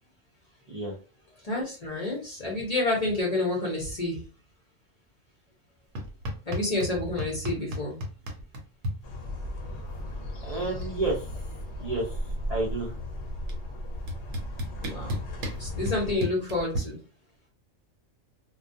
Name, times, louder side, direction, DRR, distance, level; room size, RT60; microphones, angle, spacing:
voice 1, 1.4-4.2 6.5-8.0 14.8-15.2 15.6-17.0, left 2 dB, 40° left, -3 dB, 0.6 m, -29 dB
sound 1, 6.0-6.9 7.2-9.0 10.2-10.3 10.6-11.0 11.3-12.6 13.5-13.6 14.1-16.8, left 1 dB, 80° right, 1.0 m, -33 dB
sound 2, 9.0-16.2, left 1 dB, 65° left, 0.8 m, -36 dB
voice 2, 10.4-11.3 11.8-12.1 12.5-12.9, right 2 dB, 50° right, -4 dB, 0.4 m, -30 dB
2.2 x 2.2 x 2.6 m, 0.35 s
omnidirectional pair, 1.4 m